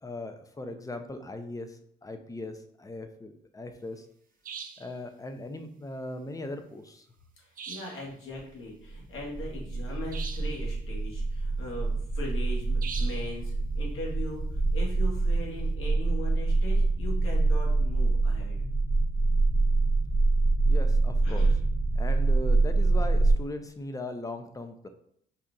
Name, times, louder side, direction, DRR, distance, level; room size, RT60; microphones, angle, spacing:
voice 1, 0.0-4.1 4.8-7.1 20.7-21.5 22.0-24.9, left 2 dB, 15° left, 7 dB, 0.5 m, -39 dB
sound 1, 4.4-4.9 7.6-8.1 10.1-10.6 12.8-13.3, right 6 dB, 40° right, 0.5 m, -41 dB
voice 2, 7.4-18.6 21.2-21.6 22.7-22.9, left 1 dB, 75° left, -2 dB, 1.6 m, -40 dB
sound 2, 8.9-23.3, right 3 dB, 10° right, 0.8 m, -25 dB
4.1 x 2.4 x 3.8 m, 0.68 s
cardioid pair, 90°, 21 cm